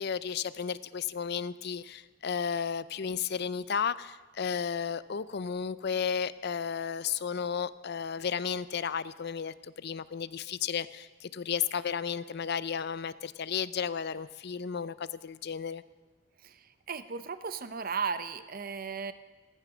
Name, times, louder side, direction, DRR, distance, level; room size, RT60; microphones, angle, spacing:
voice 1, 0.0-15.8, left 7 dB, 60° left, 17 dB, 0.5 m, -33 dB
voice 2, 16.9-19.1, right 5 dB, 50° right, 12 dB, 0.8 m, -35 dB
15.0 x 14.0 x 6.2 m, 1.2 s
head